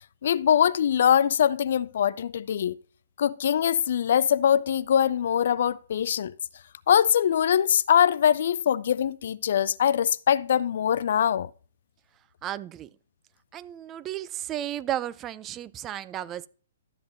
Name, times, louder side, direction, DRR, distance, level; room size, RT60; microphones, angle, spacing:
voice 1, 0.2-2.8 3.2-6.3 6.9-11.5, left 9 dB, 55° left, 0.3 m, -22 dB
voice 2, 12.4-12.9 13.5-16.5, right 12 dB, 20° right, 0.3 m, -33 dB
12.5 x 7.7 x 2.6 m
figure-of-eight pair, 125°, 0 cm